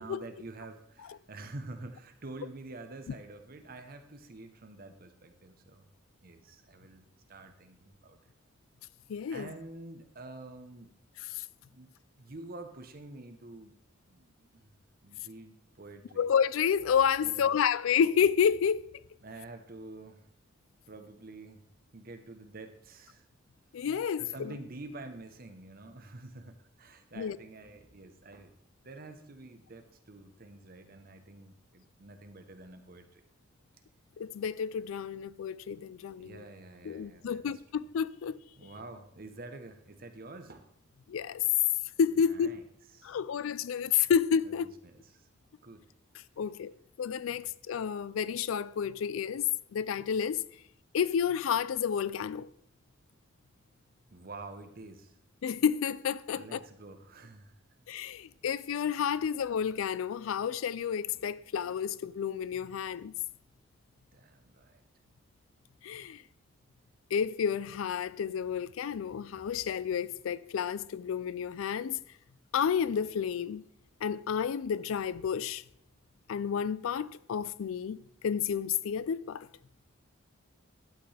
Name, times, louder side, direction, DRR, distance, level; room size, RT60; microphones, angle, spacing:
voice 1, 0.0-5.9 6.2-8.3 9.3-10.9 11.7-13.7 14.1-14.7 15.0-16.3 17.2-17.5 19.2-20.3 20.9-21.6 21.9-23.3 24.2-28.5 28.8-33.2 36.1-37.6 38.6-40.7 42.2-42.6 42.9-43.2 44.4-45.3 45.6-45.9 47.3-47.4 54.1-55.2 56.3-57.6 59.1-59.3 61.1-61.3 64.1-64.8, right 2 dB, 45° right, 0.9 m, -48 dB
voice 2, 9.1-9.5 11.3-11.4 16.2-18.9 23.7-24.5 27.2-27.4 34.2-36.4 36.8-38.4 41.1-41.4 42.0-42.5 43.0-44.7 46.4-46.7 47.0-49.4 49.7-50.4 50.9-52.5 55.4-56.6 57.9-63.1 65.8-66.2 67.1-72.0 72.5-73.6 74.0-75.6 76.3-78.0 78.2-79.5, left 7 dB, 85° left, 0.4 m, -30 dB
12.0 x 8.0 x 3.3 m
head